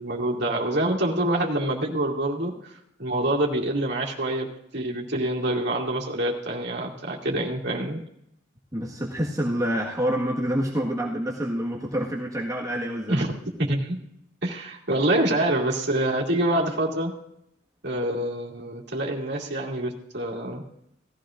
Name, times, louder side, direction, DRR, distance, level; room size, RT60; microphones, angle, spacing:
voice 1, 0.0-2.7 3.0-4.5 4.7-8.0 13.1-13.3 13.7-14.0 14.4-17.1 17.8-20.6, right 1 dB, 60° right, -2 dB, 2.4 m, -26 dB
voice 2, 8.7-13.2, equal, 20° right, -3 dB, 1.5 m, -27 dB
18.0 x 14.5 x 2.5 m, 0.77 s
head